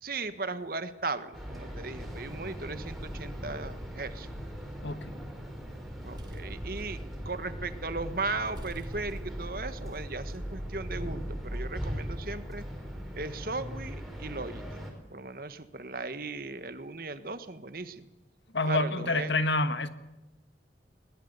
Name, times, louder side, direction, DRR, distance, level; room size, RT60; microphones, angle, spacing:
voice 1, 0.0-4.3 6.0-7.0 7.2-12.6 13.1-14.8 15.1-18.1 18.6-19.4, right 3 dB, 50° right, 1.5 m, -37 dB
sound 1, 1.3-14.9, equal, ahead, 5.0 m, -39 dB
voice 2, 4.8-5.1 18.5-19.9, left 2 dB, 80° left, 1.6 m, -28 dB
sound 2, 5.8-7.9 8.2-8.3 8.5-10.0, equal, 25° right, 2.9 m, -49 dB
21.5 x 20.5 x 8.3 m
head